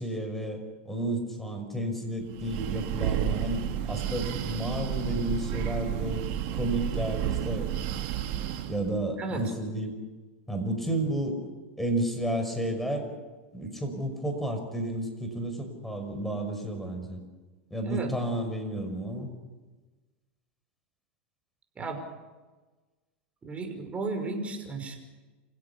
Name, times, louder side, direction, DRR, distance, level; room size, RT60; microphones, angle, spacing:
voice 1, 0.0-6.2 6.5-7.7 8.7-10.0 10.5-11.5 11.8-13.1 13.5-17.2 17.7-19.3, right 1 dB, 5° left, 4 dB, 5.9 m, -31 dB
Breathing, 2.3-8.9, right 11 dB, 55° right, 2.5 m, -31 dB
voice 2, 23.4-25.0, right 3 dB, 20° right, 5 dB, 5.7 m, -34 dB
28.0 x 16.5 x 8.6 m, 1.3 s
hypercardioid pair, 110°, 6 cm